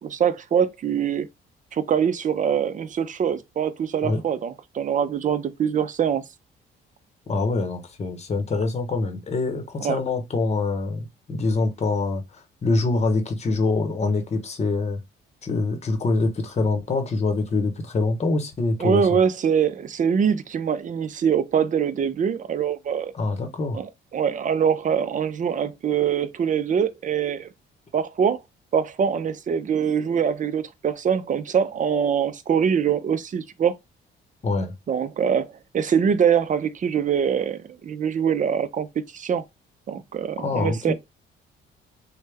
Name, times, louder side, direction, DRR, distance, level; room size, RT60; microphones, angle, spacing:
voice 1, 0.0-1.3 1.7-6.2 9.8-10.0 18.8-23.1 23.7-27.5 27.9-28.4 28.7-33.8 34.9-35.5 35.7-38.9 39.1-39.4 39.9-40.9, right 7 dB, 40° right, 0.5 m, -23 dB
voice 2, 7.3-12.2 12.6-15.0 15.4-19.2 23.1-23.8 34.4-34.7 40.4-40.9, left 3 dB, 35° left, 0.8 m, -25 dB
3.3 x 2.1 x 3.3 m
cardioid pair, 90°, 20 cm